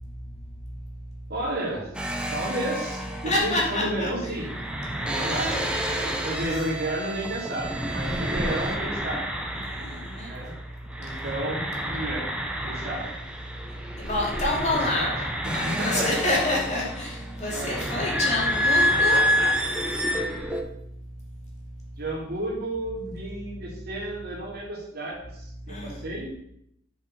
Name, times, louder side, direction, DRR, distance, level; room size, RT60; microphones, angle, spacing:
voice 1, 1.3-1.9 2.3-4.5 4.9-5.5 5.9-9.2 10.2-10.5 10.9-12.2 12.6-13.1 14.6-15.1 15.4-16.4 17.5-17.8 18.9-19.7 22.0-26.3, right 1 dB, 55° right, -3 dB, 2.6 m, -32 dB
sound 1, 1.9-10.6 10.9-20.6, equal, 5° right, 0.9 m, -29 dB
voice 2, 3.3-4.1 5.0-6.2 8.0-8.2 9.7-10.3 14.0-15.1 15.5-19.2 25.7-26.0, left 1 dB, 40° left, -4 dB, 2.5 m, -28 dB
7.0 x 5.4 x 5.3 m, 0.74 s
head